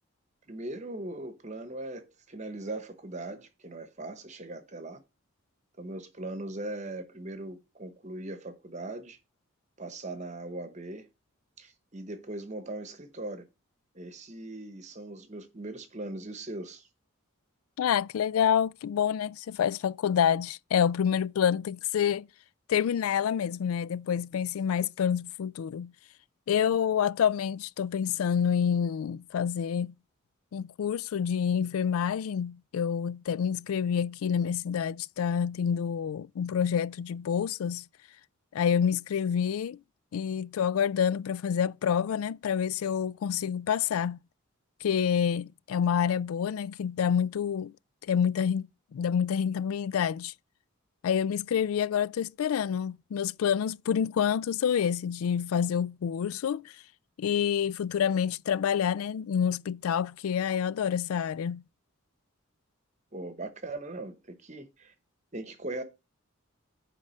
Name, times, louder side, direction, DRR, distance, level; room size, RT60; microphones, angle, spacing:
voice 1, 0.5-5.0 5.8-9.2 9.8-11.1 11.6-13.4 13.9-16.9 63.1-64.9 65.3-65.8, right 2 dB, 35° right, 0.9 m, -39 dB
voice 2, 17.8-22.3 22.7-25.9 26.5-29.9 30.5-37.8 38.5-39.8 40.1-44.2 44.8-47.7 48.1-50.3 51.0-56.6 57.2-61.6, left 8 dB, 85° left, 0.3 m, -28 dB
9.7 x 3.6 x 6.3 m
head